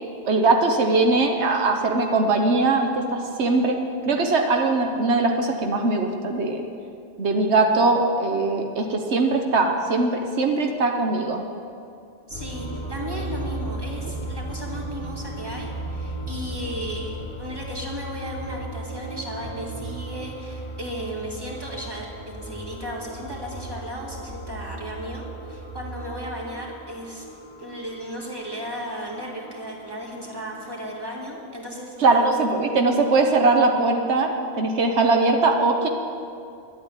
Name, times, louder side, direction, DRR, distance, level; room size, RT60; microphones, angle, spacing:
voice 1, 0.2-3.8 4.0-6.7 7.2-11.4 32.0-34.3 34.6-35.9, right 3 dB, 80° right, 3 dB, 1.3 m, -21 dB
voice 2, 12.3-27.3 27.6-32.2, equal, 20° right, -2 dB, 2.1 m, -35 dB
sound 1, 12.3-31.2, right 1 dB, 60° right, 3.0 m, -36 dB
11.5 x 8.7 x 9.8 m, 2.5 s
omnidirectional pair, 1.1 m